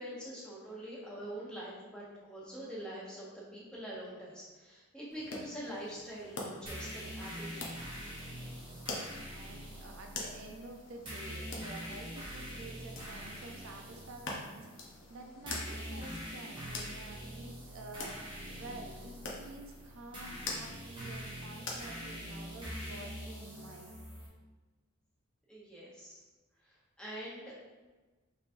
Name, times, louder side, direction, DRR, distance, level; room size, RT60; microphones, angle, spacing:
voice 1, 0.0-7.7 25.5-26.2 26.6-27.6, right 1 dB, 5° left, -7 dB, 0.9 m, -44 dB
sound 1, 5.1-22.5, left 2 dB, 60° left, 0.8 m, -46 dB
sound 2, 6.7-24.3, equal, 20° right, 0.9 m, -44 dB
voice 2, 9.3-24.0, right 2 dB, 70° right, 2 dB, 0.5 m, -49 dB
5.6 x 3.1 x 2.6 m, 1.2 s
head